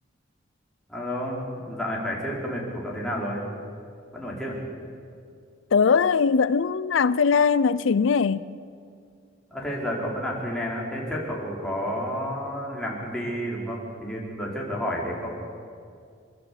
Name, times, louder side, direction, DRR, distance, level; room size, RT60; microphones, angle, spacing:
voice 1, 0.9-3.4 4.1-4.6 9.5-15.3, equal, 5° left, 4.1 m, -30 dB
voice 2, 5.7-8.5, left 5 dB, 70° left, 0.5 m, -21 dB
27.0 x 12.5 x 8.4 m
head